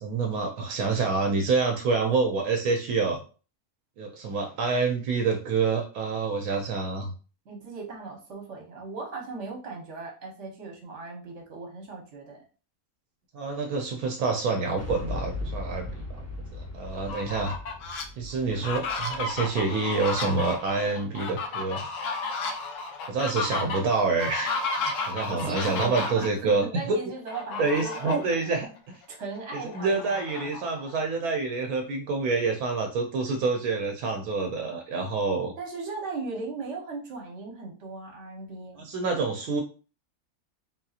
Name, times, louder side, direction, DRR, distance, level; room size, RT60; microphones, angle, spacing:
voice 1, 0.0-3.2 4.0-7.1 13.3-16.3 16.5-17.5 18.2-21.9 23.1-27.0 27.6-29.0 29.6-35.5 38.8-39.6, right 4 dB, 80° right, 3 dB, 1.0 m, -27 dB
voice 2, 7.4-12.4 25.3-28.4 29.1-30.5 35.6-38.8, right 3 dB, 55° right, 1 dB, 1.2 m, -38 dB
Boom, 14.8-20.7, left 2 dB, 15° left, 0.5 m, -38 dB
Fowl, 16.9-18.0 18.5-26.3 27.3-28.3 28.8-28.9 29.2-31.0, left 3 dB, 65° left, 0.9 m, -33 dB
3.8 x 2.7 x 2.4 m, 0.36 s
omnidirectional pair, 1.5 m